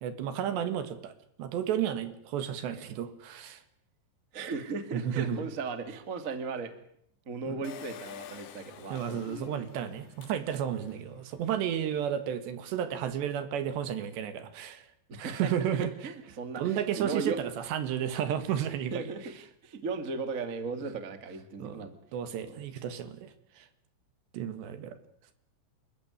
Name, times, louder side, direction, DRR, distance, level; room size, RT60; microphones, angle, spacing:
voice 1, 0.0-1.1 1.4-3.6 4.9-5.4 7.5-7.6 8.9-14.9 15.2-15.9 16.6-19.0 21.6-23.7 24.3-25.0, right 9 dB, 65° right, 11 dB, 3.6 m, -32 dB
voice 2, 4.3-6.7 7.2-9.4 15.1-17.4 18.9-19.3 19.6-21.9 22.5-22.7, right 4 dB, 40° right, 9 dB, 1.0 m, -37 dB
Engine, 7.6-11.1 11.6-11.7 11.9-12.0, left 10 dB, 65° left, 3.3 m, -47 dB
28.5 x 14.5 x 9.8 m, 0.70 s
omnidirectional pair, 5.6 m